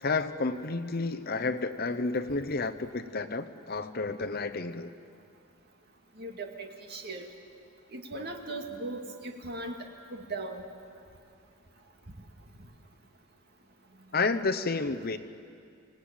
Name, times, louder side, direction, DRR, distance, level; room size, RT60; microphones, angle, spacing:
voice 1, 0.0-4.9 14.1-15.2, left 3 dB, 45° left, 9 dB, 0.9 m, -31 dB
voice 2, 6.2-7.3 7.9-9.8 10.1-10.6, right 2 dB, 50° right, 3 dB, 2.1 m, -38 dB
25.5 x 18.5 x 8.9 m, 2.4 s
head